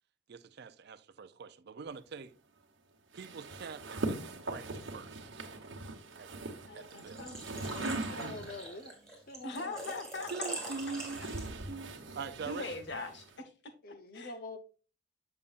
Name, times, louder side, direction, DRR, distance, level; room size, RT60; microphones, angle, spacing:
voice 1, 0.3-2.3 3.1-5.3 6.7-7.2 10.3-12.7, right 5 dB, 60° right, 0.5 m, -44 dB
sound 1, 3.1-8.8 9.8-13.4, right 2 dB, 85° right, 1.2 m, -41 dB
voice 2, 6.7-7.4 9.4-10.3 12.4-13.7 14.1-14.4, left 3 dB, 65° left, 1.2 m, -41 dB
Engine / Trickle dribble / Fill (with liquid), 6.9-11.7, right 1 dB, 5° left, 2.2 m, -44 dB
voice 3, 7.5-8.9 9.3-9.9 13.8-14.6, left 2 dB, 50° left, 0.8 m, -46 dB
6.9 x 6.9 x 2.5 m
head